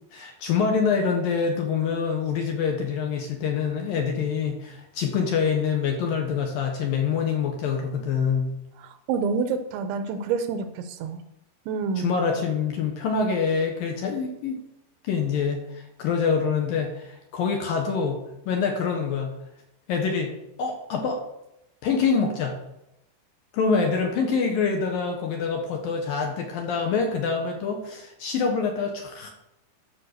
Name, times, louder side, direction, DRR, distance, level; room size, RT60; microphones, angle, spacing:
voice 1, 0.1-8.5 12.0-14.6 15.0-19.3 19.9-21.2 21.8-22.6 23.5-29.3, left 5 dB, 65° left, 2 dB, 2.5 m, -25 dB
voice 2, 8.8-11.2 11.7-12.1, right 5 dB, 85° right, 8 dB, 3.3 m, -28 dB
14.0 x 5.6 x 6.6 m, 0.86 s
omnidirectional pair, 5.3 m